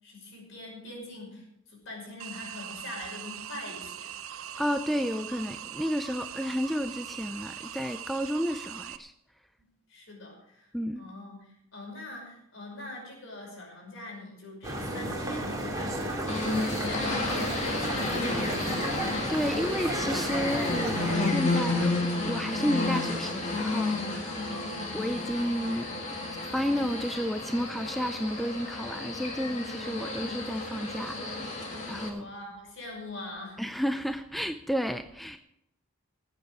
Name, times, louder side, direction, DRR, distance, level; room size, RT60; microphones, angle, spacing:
voice 1, 0.0-4.1 9.9-10.7 11.0-18.6 24.3-25.1 32.1-33.6, left 2 dB, 60° left, -1 dB, 5.8 m, -43 dB
sound 1, 2.2-9.0, right 10 dB, 80° right, 0.7 m, -41 dB
voice 2, 4.6-9.1 10.7-11.0 19.3-22.0 22.2-24.4 24.9-25.9 26.5-32.3 33.6-35.4, equal, ahead, 8 dB, 0.4 m, -31 dB
sound 2, 14.6-21.2, right 1 dB, 15° right, 2.5 m, -33 dB
sound 3, 16.3-32.1, left 2 dB, 35° left, 2.4 m, -31 dB
20.0 x 8.2 x 4.8 m, 0.78 s
head